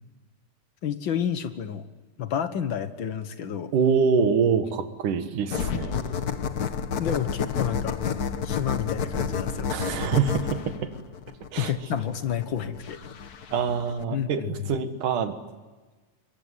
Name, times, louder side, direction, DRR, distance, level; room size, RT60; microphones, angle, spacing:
voice 1, 0.8-1.8 2.2-3.7 7.0-8.0 8.4-9.7 11.6-13.0 14.1-14.7, left 8 dB, 55° left, 10 dB, 1.5 m, -30 dB
voice 2, 3.7-6.0 9.7-10.9 11.5-11.7 13.5-15.3, right 6 dB, 80° right, 9 dB, 3.1 m, -25 dB
sound 1, 5.5-14.0, left 6 dB, 70° left, 0.8 m, -30 dB
24.0 x 23.0 x 9.8 m, 1.3 s
omnidirectional pair, 3.6 m